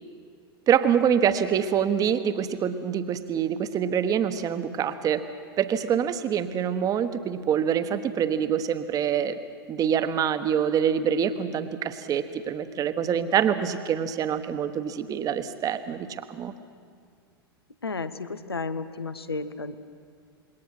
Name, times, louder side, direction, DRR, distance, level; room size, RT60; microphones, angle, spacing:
voice 1, 0.7-5.2 5.6-9.4 9.7-16.5, right 8 dB, 30° right, 11 dB, 1.3 m, -25 dB
voice 2, 17.8-19.8, left 3 dB, 80° left, 12 dB, 1.1 m, -32 dB
26.5 x 22.0 x 6.2 m, 2.2 s
figure-of-eight pair, 90°, 13 cm